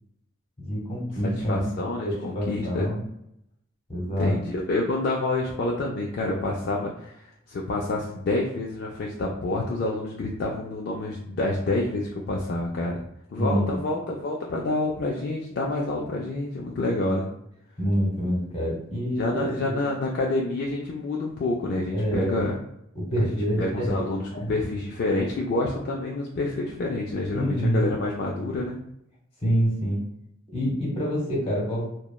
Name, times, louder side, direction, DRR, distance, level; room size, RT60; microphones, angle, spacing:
voice 1, 0.6-1.7 2.0-3.0 3.9-4.4 13.4-13.8 17.8-19.8 21.9-22.4 22.9-24.0 24.3-24.5 27.3-27.9 29.4-30.0 30.5-31.8, equal, 30° left, -3 dB, 0.9 m, -26 dB
voice 2, 1.2-2.9 4.2-13.0 13.3-17.3 19.2-22.5 23.2-28.8, left 2 dB, 55° left, -2 dB, 0.3 m, -28 dB
2.9 x 2.1 x 2.2 m, 0.77 s
head